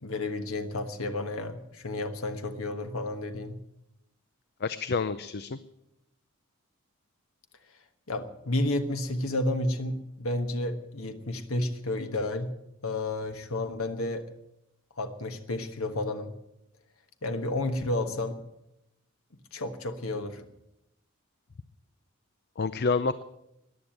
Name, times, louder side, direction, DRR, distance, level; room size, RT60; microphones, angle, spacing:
voice 1, 0.0-3.6 8.1-12.5 12.8-14.3 15.0-16.3 17.2-18.4 19.5-20.5, left 2 dB, 85° left, 7 dB, 1.4 m, -31 dB
voice 2, 4.6-5.6 22.6-23.2, left 4 dB, 50° left, 14 dB, 0.5 m, -28 dB
15.0 x 10.5 x 9.2 m, 0.85 s
head